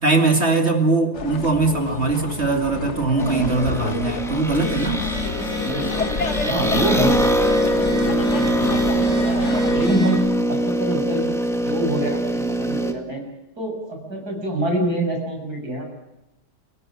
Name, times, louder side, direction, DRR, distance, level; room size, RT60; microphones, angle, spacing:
voice 1, 0.0-5.0 8.5-8.7, right 3 dB, 40° right, 4 dB, 2.7 m, -21 dB
sound 1, 1.1-9.9, left 4 dB, 45° left, 1.7 m, -29 dB
sound 2, 3.2-12.9, right 1 dB, ahead, 1.9 m, -23 dB
Telephone, 4.5-10.2, left 3 dB, 70° left, 8.9 m, -31 dB
voice 2, 5.6-7.5 8.3-10.2 10.5-11.2 11.6-13.2 13.6-15.9, right 1 dB, 65° right, 2 dB, 7.7 m, -26 dB
29.5 x 17.0 x 7.4 m, 0.91 s
omnidirectional pair, 1.8 m